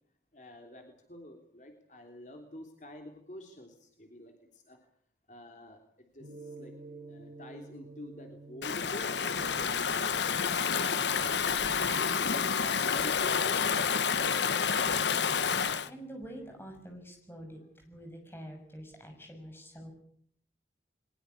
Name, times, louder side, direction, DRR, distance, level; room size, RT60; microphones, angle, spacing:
voice 1, 0.3-4.8 5.3-6.7 7.1-11.6 12.0-13.6, left 1 dB, 45° left, 3 dB, 3.2 m, -48 dB
Gong, 6.2-16.8, right 3 dB, 80° right, 6.7 m, -52 dB
Stream / Ocean, 8.6-15.9, left 6 dB, 85° left, 1.1 m, -29 dB
voice 2, 14.5-19.9, equal, 15° left, 3 dB, 6.3 m, -47 dB
22.5 x 20.5 x 8.4 m, 0.65 s
head